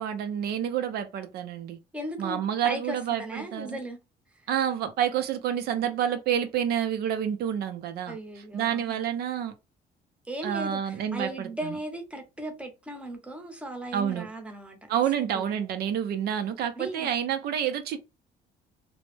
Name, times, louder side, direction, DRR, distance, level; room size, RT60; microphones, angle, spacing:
voice 1, 0.0-1.8 2.2-3.8 4.5-8.2 8.5-9.5 10.4-11.5 13.9-14.3 14.9-18.0, right 9 dB, 70° right, 0.5 m, -28 dB
voice 2, 1.9-4.0 8.1-9.0 10.3-14.9 15.3-15.5 16.8-17.1, right 1 dB, 5° right, 0.7 m, -37 dB
2.1 x 2.0 x 3.1 m
cardioid pair, 110°, 17 cm